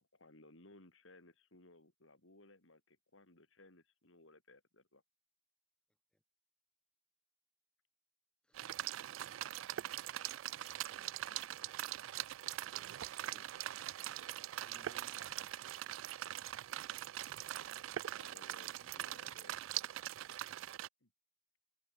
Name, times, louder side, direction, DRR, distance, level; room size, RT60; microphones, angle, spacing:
voice 1, 0.0-5.0 10.6-10.7 11.3-11.4 13.3-13.5 18.2-19.8 21.0-21.1, left 2 dB, 85° left, 4.9 m, -62 dB
sound 1, 8.5-20.9, right 13 dB, 90° right, 0.4 m, -42 dB
voice 2, 9.2-10.3 10.7-11.9 14.6-15.2, equal, 5° left, 4.4 m, -69 dB
head